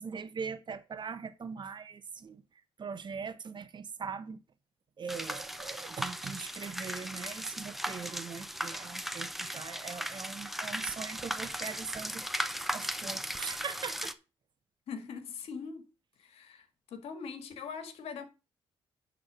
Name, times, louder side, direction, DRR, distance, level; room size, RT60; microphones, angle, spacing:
voice 1, 0.0-2.4 2.8-4.4 5.0-12.2 12.7-14.1, right 6 dB, 50° right, 1.3 m, -41 dB
sound 1, 5.1-14.1, equal, ahead, 0.9 m, -37 dB
voice 2, 14.9-15.9 16.2-18.3, left 6 dB, 80° left, 1.7 m, -42 dB
10.0 x 3.9 x 6.0 m
cardioid pair, 70°, 10 cm